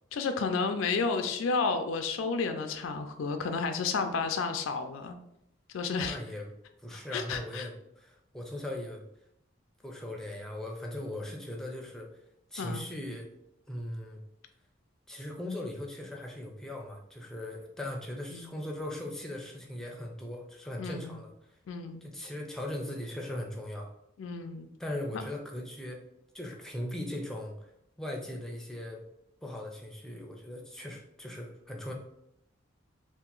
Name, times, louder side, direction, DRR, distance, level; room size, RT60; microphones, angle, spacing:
voice 1, 0.1-5.2 5.7-6.2 6.9-7.7 12.6-12.8 18.3-18.6 20.8-21.2 21.7-22.0 24.2-24.7, left 4 dB, 85° left, 7 dB, 0.4 m, -31 dB
voice 2, 6.0-6.5 6.8-9.0 9.8-12.1 12.5-13.3 13.7-14.2 15.1-21.3 22.0-23.9 24.8-26.0 26.3-27.5 28.0-29.0 29.4-31.9, left 1 dB, 5° left, 0 dB, 0.5 m, -39 dB
2.8 x 2.5 x 3.7 m, 0.79 s
head